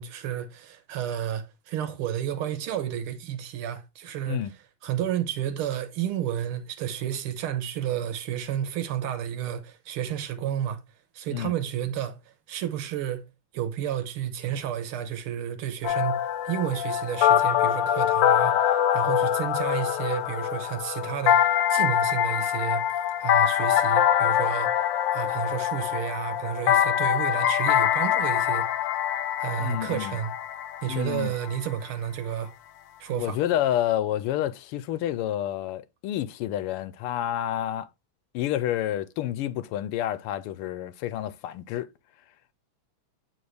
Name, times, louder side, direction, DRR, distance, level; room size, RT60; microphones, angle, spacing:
voice 1, 0.0-4.4 4.8-10.8 11.1-12.2 12.5-13.2 13.5-22.8 23.2-24.7 25.1-28.7 29.4-30.3 30.8-32.5 33.0-33.4, right 10 dB, 80° right, 1.8 m, -31 dB
sound 1, 15.8-31.6, left 10 dB, 70° left, 1.2 m, -24 dB
voice 2, 29.6-30.2 30.9-31.3 33.1-37.9 38.3-41.9, left 12 dB, 85° left, 1.5 m, -29 dB
8.6 x 4.0 x 3.2 m
omnidirectional pair, 2.4 m